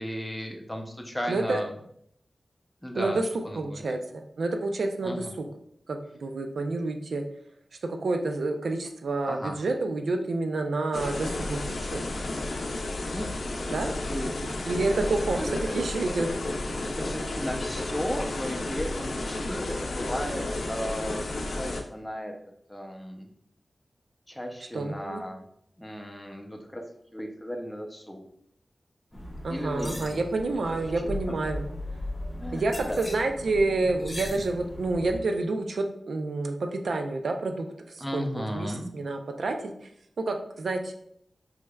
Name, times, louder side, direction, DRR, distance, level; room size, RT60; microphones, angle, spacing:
voice 1, 0.0-1.7 2.8-3.2 3.5-3.8 5.0-5.4 9.2-9.6 13.1-14.3 15.4-15.8 17.0-22.3 22.7-23.3 24.3-25.4 25.8-26.8 27.1-28.2 29.1-29.2 29.5-30.2 32.4-33.0 38.0-38.9, equal, 5° left, 1 dB, 0.5 m, -35 dB
voice 2, 1.3-1.6 2.9-3.2 3.5-5.4 5.9-7.2 7.9-12.1 13.7-13.9 14.4-15.4 15.7-16.3 24.7-25.2 29.4-31.6 32.5-38.2 38.5-39.9 40.3-40.9, right 2 dB, 85° right, 5 dB, 0.4 m, -29 dB
sound 1, 10.9-21.8, left 2 dB, 85° left, 0.5 m, -32 dB
sound 2, 29.1-35.2, left 1 dB, 25° left, 1.0 m, -37 dB
4.6 x 3.1 x 2.2 m, 0.70 s
wide cardioid pair, 105°, 0 cm